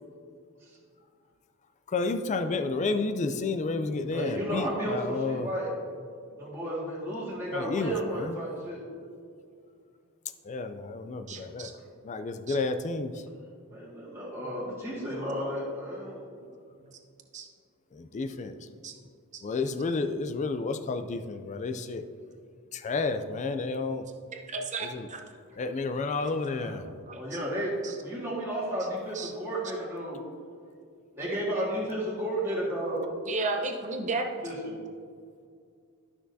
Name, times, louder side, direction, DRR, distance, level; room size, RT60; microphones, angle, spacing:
voice 1, 1.9-5.5 7.5-8.4 10.4-11.8 12.0-13.3 17.9-18.5 19.4-22.0 22.7-24.1 24.8-25.1 25.5-26.9, left 3 dB, 35° left, 9 dB, 0.3 m, -31 dB
voice 2, 4.0-5.7 6.4-8.8 11.4-11.5 11.8-11.9 13.7-16.2 26.5-26.8 27.1-30.2 31.2-33.1 34.4-34.8, right 1 dB, 10° right, -8 dB, 1.9 m, -33 dB
voice 3, 11.3-11.7 12.5-12.6 16.1-16.2 17.3-17.5 18.8-18.9 19.3-19.4 24.3-25.2 27.1-27.2 27.8-28.0 29.1-29.3 33.3-34.3, right 3 dB, 35° right, 3 dB, 0.8 m, -33 dB
12.5 x 6.1 x 2.7 m, 2.3 s
head